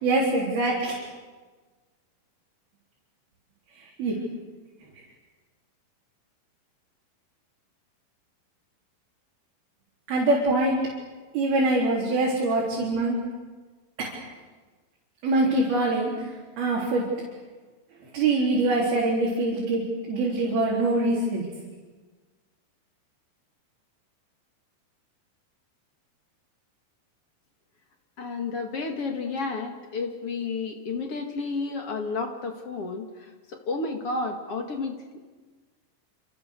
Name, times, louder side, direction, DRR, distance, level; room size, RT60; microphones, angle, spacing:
voice 1, 0.0-0.9 4.0-4.2 10.1-10.8 11.3-13.2 14.0-14.1 15.2-16.3 16.6-17.0 18.1-19.8 20.1-21.4, right 2 dB, 70° right, -5 dB, 6.1 m, -24 dB
voice 2, 28.2-35.2, left 3 dB, 45° left, 4 dB, 2.4 m, -31 dB
28.0 x 27.5 x 6.8 m, 1.3 s
omnidirectional pair, 4.5 m